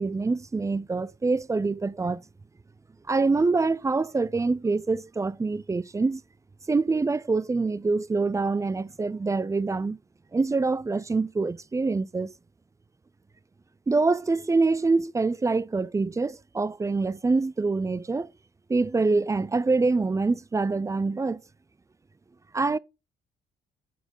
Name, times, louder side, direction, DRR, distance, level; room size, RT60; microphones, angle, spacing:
voice 1, 0.0-2.2 3.1-6.2 6.7-10.0 10.3-12.3 13.9-18.3 18.7-21.4 22.5-22.8, right 3 dB, 15° right, 0.4 m, -25 dB
9.9 x 4.3 x 4.6 m
cardioid pair, 90°, 20 cm